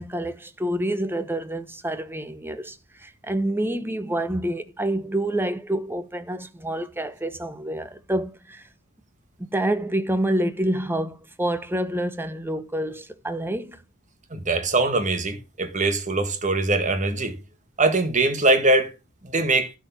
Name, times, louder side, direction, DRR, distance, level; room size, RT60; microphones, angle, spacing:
voice 1, 0.0-8.6 9.4-13.8, right 1 dB, 10° right, 1.0 m, -27 dB
voice 2, 14.3-17.4 17.8-18.9 19.2-19.7, right 2 dB, 35° right, 1.8 m, -22 dB
12.0 x 4.9 x 5.9 m
head